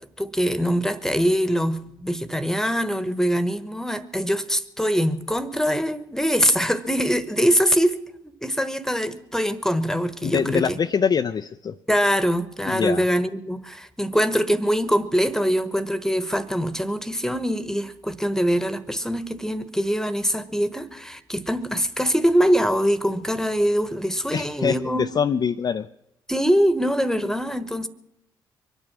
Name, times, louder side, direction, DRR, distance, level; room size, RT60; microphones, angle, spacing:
voice 1, 0.2-10.8 11.9-25.1 26.3-27.9, equal, 5° left, 1.2 m, -23 dB
voice 2, 10.2-11.8 12.7-13.0 24.3-25.9, left 7 dB, 40° left, 0.5 m, -24 dB
24.0 x 9.1 x 6.1 m
figure-of-eight pair, 40°, 11 cm